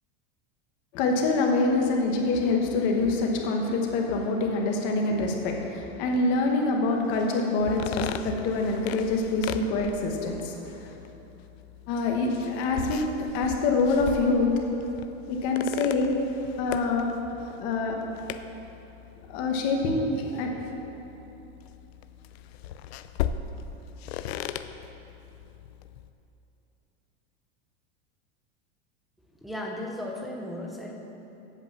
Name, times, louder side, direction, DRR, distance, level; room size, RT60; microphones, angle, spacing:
voice 1, 0.9-10.9 11.9-14.5 15.3-16.1 16.6-17.1 17.6-18.0 19.3-20.5, left 3 dB, 35° left, 1 dB, 1.2 m, -25 dB
sound 1, 7.6-26.1, left 9 dB, 70° left, 0.6 m, -39 dB
voice 2, 29.4-30.9, left 1 dB, ahead, -2 dB, 0.4 m, -35 dB
8.2 x 7.9 x 7.2 m, 3.0 s
supercardioid pair, 180°, 32 cm